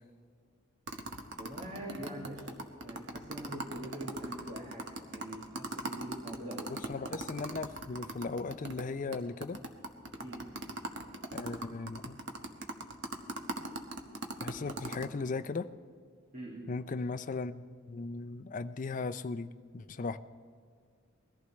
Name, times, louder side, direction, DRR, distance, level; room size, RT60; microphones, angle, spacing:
sound 1, 0.9-8.8 9.1-9.2 9.4-15.1, right 2 dB, 65° right, 1.1 m, -39 dB
voice 1, 1.4-6.7 10.2-10.5 16.3-16.7, right 1 dB, 40° right, -3 dB, 1.9 m, -44 dB
voice 2, 6.7-9.6 11.3-12.2 14.4-15.7 16.7-17.6 17.9-20.2, left 4 dB, 40° left, 12 dB, 0.4 m, -37 dB
21.5 x 14.5 x 3.1 m, 2.1 s
head